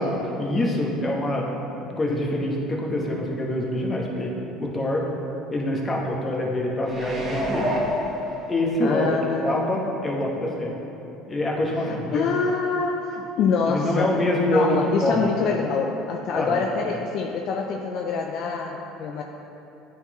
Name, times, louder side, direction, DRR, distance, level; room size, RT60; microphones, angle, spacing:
voice 1, 0.0-1.5 2.0-4.3 4.6-5.1 5.5-7.7 8.5-9.1 9.4-10.7 11.3-12.2 13.7-15.3 16.4-16.6, left 1 dB, 25° left, -2 dB, 1.1 m, -25 dB
sound 1, 6.8-8.9 9.4-9.5, equal, 30° right, 1.2 m, -28 dB
voice 2, 8.8-9.8 11.8-14.2 14.5-19.2, left 5 dB, 60° left, 1 dB, 0.4 m, -26 dB
9.1 x 4.0 x 3.0 m, 2.9 s
supercardioid pair, 85°, 0 cm